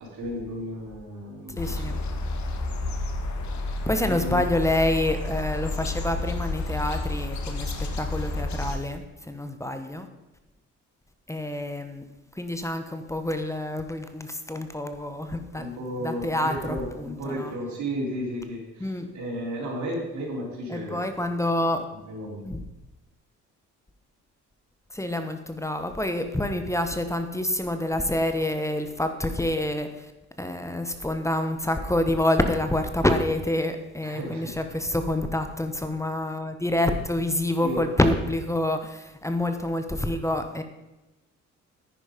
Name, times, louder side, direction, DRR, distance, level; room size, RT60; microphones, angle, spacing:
voice 1, 0.0-2.0 3.6-3.7 4.0-4.4 15.5-21.1 22.1-22.5 34.0-34.6 37.6-37.9, equal, 70° right, -3 dB, 4.7 m, -34 dB
sound 1, 1.6-8.8, left 2 dB, 70° left, 1.7 m, -30 dB
voice 2, 1.6-2.0 3.9-10.1 11.3-12.0 12.4-15.7 16.0-17.5 18.8-19.1 20.7-21.8 22.4-22.6 24.9-29.9 30.4-40.6, left 1 dB, 10° left, 7 dB, 1.2 m, -27 dB
10.0 x 9.5 x 5.2 m, 1.0 s
cardioid pair, 90°, 30 cm